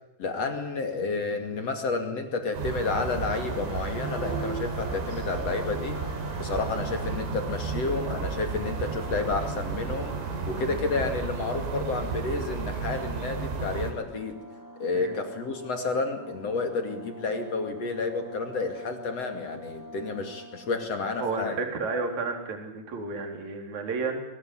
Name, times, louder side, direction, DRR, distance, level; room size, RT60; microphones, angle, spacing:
voice 1, 0.2-6.0 6.4-10.2 10.5-14.4 14.8-21.7, left 3 dB, 40° left, 6 dB, 2.6 m, -30 dB
sound 1, 2.5-13.9, right 5 dB, 80° right, 5.8 m, -33 dB
sound 2, 3.3-21.1, equal, 5° left, 1.5 m, -45 dB
voice 2, 21.2-24.2, right 4 dB, 40° right, 3 dB, 4.9 m, -31 dB
23.0 x 19.5 x 9.9 m, 0.91 s
omnidirectional pair, 5.7 m